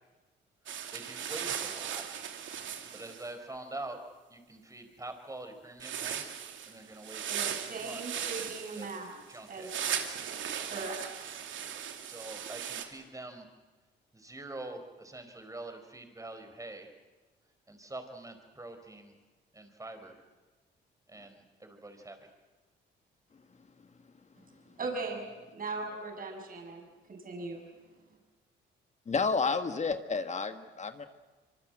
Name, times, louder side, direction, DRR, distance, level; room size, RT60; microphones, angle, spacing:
sound 1, 0.7-3.3 5.8-12.8, right 9 dB, 75° right, 2.7 m, -38 dB
voice 1, 0.9-2.0 2.9-4.0 4.3-6.2 6.6-8.2 8.7-9.7 10.7-11.0 12.0-13.5 14.1-16.9 17.7-19.1 19.5-20.2 21.1-22.3, right 2 dB, 15° right, 7 dB, 4.7 m, -45 dB
voice 2, 7.3-9.2 9.5-11.4 24.8-25.2 25.5-26.8 27.1-27.6, right 3 dB, 45° right, 2 dB, 6.9 m, -39 dB
voice 3, 29.1-31.1, left 4 dB, 35° left, 8 dB, 1.6 m, -30 dB
25.5 x 24.0 x 7.8 m, 1.3 s
cardioid pair, 90°, 20 cm